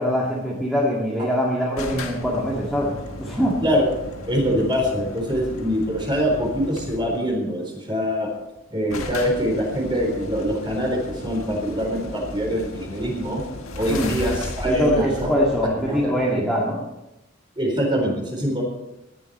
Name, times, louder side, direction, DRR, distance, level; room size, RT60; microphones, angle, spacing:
voice 1, 0.0-2.9 3.2-3.6 13.9-14.1 14.6-16.8, equal, ahead, -4 dB, 2.1 m, -23 dB
sound 1, 1.8-7.3 8.3-8.4 8.5-8.6 8.9-16.4, left 2 dB, 85° left, 1.8 m, -35 dB
voice 2, 4.3-8.3 8.7-13.4 13.8-15.3 15.7-16.5 17.6-18.6, equal, 20° right, 0 dB, 4.1 m, -24 dB
18.5 x 11.5 x 4.3 m, 0.94 s
head